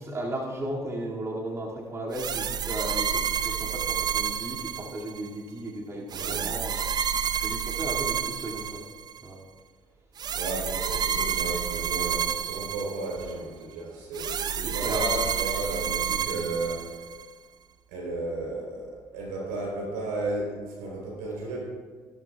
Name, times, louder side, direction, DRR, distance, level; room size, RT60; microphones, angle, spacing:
voice 1, 0.0-6.8 7.1-8.8 9.2-9.4 14.6-15.1, right 1 dB, 30° right, -3 dB, 2.3 m, -35 dB
sound 1, 2.1-5.3 6.1-9.2 10.2-13.3 14.1-17.2, right 8 dB, 50° right, 0.6 m, -30 dB
voice 2, 6.1-6.5 10.3-17.0 17.9-21.6, right 2 dB, 85° right, -2 dB, 3.6 m, -33 dB
15.5 x 12.5 x 2.3 m, 1.5 s
hypercardioid pair, 60°, 9 cm